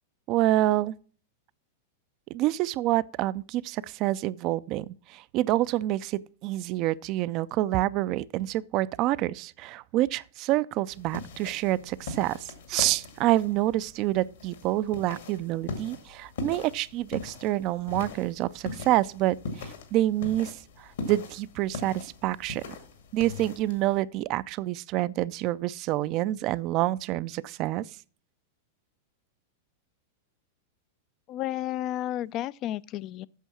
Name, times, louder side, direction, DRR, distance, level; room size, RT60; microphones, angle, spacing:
voice 1, 0.3-0.9 2.3-22.6 23.1-27.9, right 15 dB, 45° right, 0.4 m, -27 dB
sound 1, 10.9-24.0, left 4 dB, 70° left, 2.1 m, -41 dB
voice 2, 31.3-33.3, left 13 dB, 40° left, 0.4 m, -32 dB
8.2 x 6.2 x 6.0 m
hypercardioid pair, 105°, 0 cm